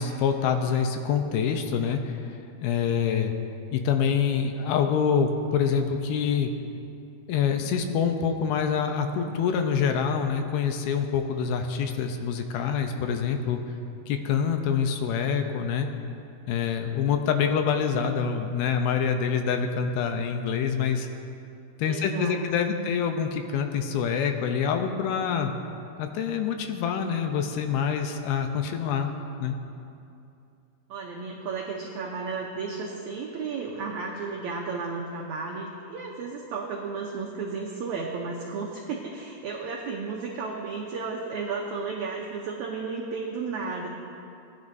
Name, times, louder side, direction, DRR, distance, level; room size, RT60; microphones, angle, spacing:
voice 1, 0.0-2.2 2.6-3.3 3.7-6.5 7.3-13.6 14.1-15.9 16.5-21.1 21.8-25.5 26.0-29.1 29.4-29.6, left 7 dB, 80° left, 6 dB, 2.6 m, -26 dB
voice 2, 21.8-22.8 30.9-43.9, right 4 dB, 90° right, -1 dB, 1.6 m, -33 dB
19.0 x 10.5 x 2.7 m, 2.6 s
omnidirectional pair, 4.4 m